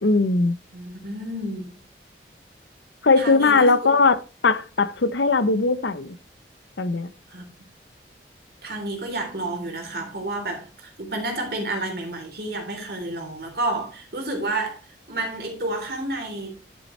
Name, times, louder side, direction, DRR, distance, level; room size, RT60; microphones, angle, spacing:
voice 1, 0.0-0.6 3.0-4.2 4.4-6.2 6.8-7.1, left 3 dB, 85° left, 0.8 m, -19 dB
voice 2, 0.7-1.7 3.2-3.9 7.3-7.5 8.6-14.8 15.1-16.5, right 2 dB, 60° right, 3.6 m, -30 dB
11.0 x 7.1 x 3.2 m
head